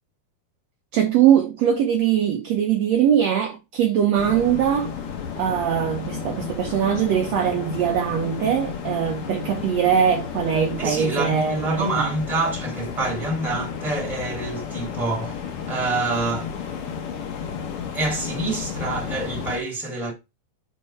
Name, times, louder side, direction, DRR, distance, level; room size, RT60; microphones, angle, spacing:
voice 1, 0.9-4.9 5.4-12.1, right 9 dB, 80° right, 1.5 m, -21 dB
sound 1, 4.2-19.6, left 7 dB, 90° left, 1.2 m, -32 dB
voice 2, 10.8-15.4 15.7-16.5 17.9-20.1, right 2 dB, ahead, 1.6 m, -26 dB
5.5 x 4.4 x 4.2 m
omnidirectional pair, 4.1 m